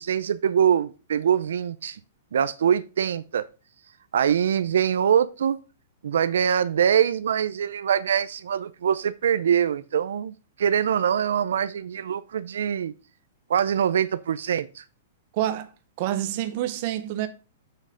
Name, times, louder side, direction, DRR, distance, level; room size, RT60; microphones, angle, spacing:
voice 1, 0.0-2.0 2.3-3.5 4.1-5.6 6.0-12.9 13.5-14.8, right 8 dB, 80° right, 0.5 m, -23 dB
voice 2, 15.3-15.7 16.0-17.3, right 12 dB, 35° right, 0.8 m, -27 dB
6.5 x 6.5 x 4.8 m
hypercardioid pair, 175°, 0 cm